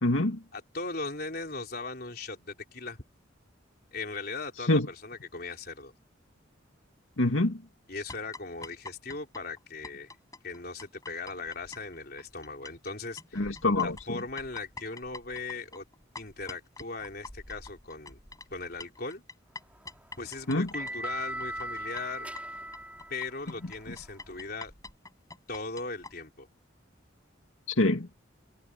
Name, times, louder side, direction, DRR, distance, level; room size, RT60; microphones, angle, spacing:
voice 1, 0.0-0.4 4.7-4.9 7.2-7.6 13.4-14.2 20.5-20.7 27.7-28.1, left 2 dB, 90° left, 2.3 m, -25 dB
voice 2, 0.5-3.0 3.9-5.9 7.9-10.1 10.4-13.5 13.7-15.9 16.2-18.2 18.5-19.2 20.2-22.3 23.1-24.7 25.5-26.5, left 3 dB, 50° left, 3.9 m, -38 dB
sound 1, 8.1-12.9 13.2-26.1, left 3 dB, 20° left, 8.0 m, -46 dB
sound 2, 19.6-24.5, right 1 dB, 5° right, 3.8 m, -40 dB
head